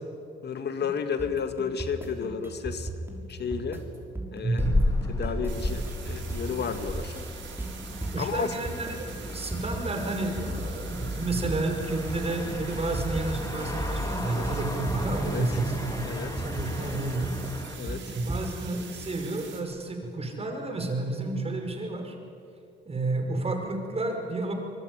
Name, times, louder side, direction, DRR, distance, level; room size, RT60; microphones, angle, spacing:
voice 1, 0.4-2.9 3.3-3.8 4.3-4.7 5.1-7.2 8.2-8.5 14.3-14.5 15.3-15.4 16.0-16.3 17.8-18.0, left 6 dB, 55° left, 8 dB, 2.0 m, -32 dB
sound 1, 1.2-18.8, right 2 dB, 10° right, 6.6 m, -36 dB
voice 2, 4.4-4.8 8.1-16.1 16.4-17.3 18.1-22.2 22.9-24.5, right 2 dB, 30° right, 4 dB, 5.6 m, -31 dB
sound 2, 4.6-17.8, left 1 dB, 15° left, 3.5 m, -33 dB
sound 3, 5.5-19.6, right 7 dB, 70° right, 5.2 m, -45 dB
25.0 x 22.5 x 9.8 m, 2.6 s
cardioid pair, 90°, 20 cm